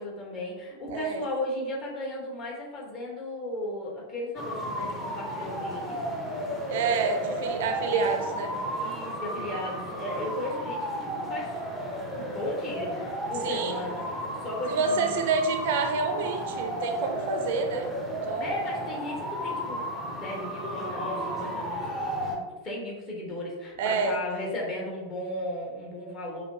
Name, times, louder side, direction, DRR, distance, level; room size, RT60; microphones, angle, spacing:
voice 1, 0.0-6.0 7.2-7.5 7.8-8.1 8.7-11.6 12.2-14.0 14.4-15.3 18.3-19.9 20.2-26.4, left 1 dB, 30° left, -3 dB, 1.1 m, -35 dB
voice 2, 0.9-1.2 6.7-8.5 13.4-13.8 14.7-17.9 18.3-18.5 23.8-24.2, right 5 dB, 55° right, 4 dB, 0.4 m, -28 dB
sound 1, 4.4-22.4, equal, 15° left, 0.7 m, -33 dB
5.6 x 2.2 x 2.7 m, 1.2 s
figure-of-eight pair, 90°, 0 cm